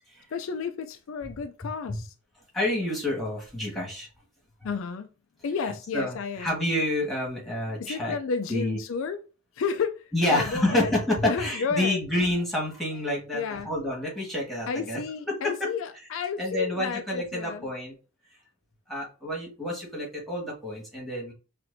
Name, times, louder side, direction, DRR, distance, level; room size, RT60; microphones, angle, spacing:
voice 1, 0.3-2.1 4.6-5.1 5.4-6.6 7.8-9.2 9.6-11.0 11.2-12.0 13.3-13.7 14.7-17.7, left 5 dB, 70° left, 0.4 m, -32 dB
voice 2, 2.5-4.1 5.9-8.2 8.5-8.8 10.1-15.0 15.3-15.7 16.4-17.9 18.9-21.3, left 1 dB, ahead, 1.6 m, -28 dB
5.8 x 2.5 x 2.6 m
head